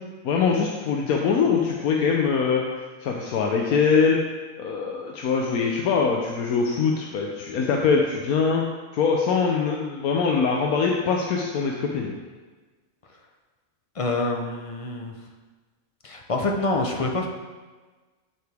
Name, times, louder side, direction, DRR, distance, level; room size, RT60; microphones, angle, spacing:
voice 1, 0.2-2.6 3.0-4.2 4.6-8.6 8.9-12.1, left 5 dB, 85° left, 0 dB, 1.2 m, -23 dB
voice 2, 14.0-15.1 16.0-17.3, left 2 dB, 40° left, 2 dB, 0.4 m, -26 dB
10.5 x 4.8 x 3.5 m, 1.3 s
omnidirectional pair, 1.5 m